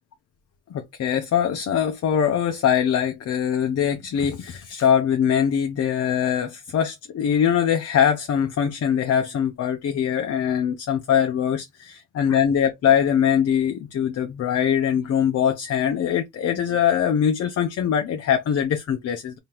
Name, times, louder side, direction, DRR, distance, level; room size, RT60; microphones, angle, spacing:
voice 1, 0.7-19.4, left 8 dB, 55° left, 0.7 m, -22 dB
3.6 x 2.8 x 2.9 m
cardioid pair, 90°, 30 cm